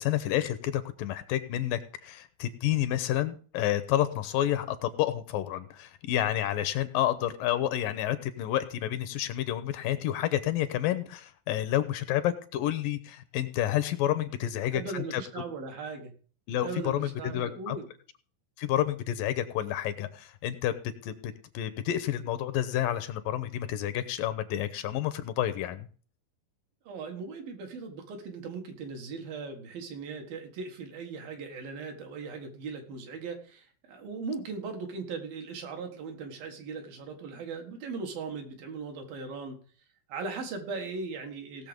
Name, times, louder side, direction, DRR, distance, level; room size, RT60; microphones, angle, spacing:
voice 1, 0.0-15.2 16.5-17.8 18.6-20.7 21.0-25.9, left 12 dB, 80° left, 12 dB, 2.3 m, -29 dB
voice 2, 14.7-16.1 16.6-17.9 26.9-39.6 40.1-41.7, right 4 dB, 75° right, 4 dB, 3.5 m, -38 dB
17.5 x 6.8 x 5.2 m, 0.42 s
omnidirectional pair, 4.2 m